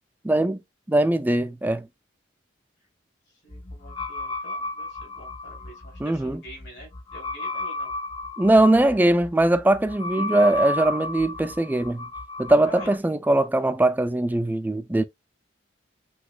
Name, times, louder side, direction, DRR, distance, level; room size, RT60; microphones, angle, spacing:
voice 1, 0.2-0.6 0.9-1.9 6.0-6.4 8.4-12.1 12.4-15.0, right 1 dB, 10° right, 0.3 m, -21 dB
voice 2, 3.4-7.9 12.6-13.2, right 1 dB, 65° left, 3.3 m, -46 dB
sound 1, 3.5-13.0, left 2 dB, 25° left, 0.6 m, -33 dB
7.8 x 3.0 x 2.2 m
head